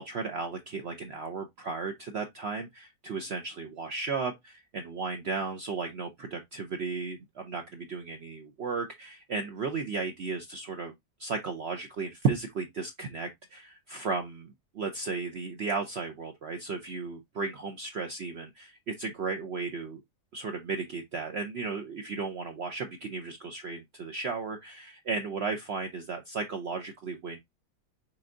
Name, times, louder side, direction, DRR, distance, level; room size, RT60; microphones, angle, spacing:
voice 1, 0.0-10.9 11.2-20.0 20.3-27.4, right 4 dB, 60° right, 0.7 m, -34 dB
5.9 x 3.6 x 2.5 m
omnidirectional pair, 1.7 m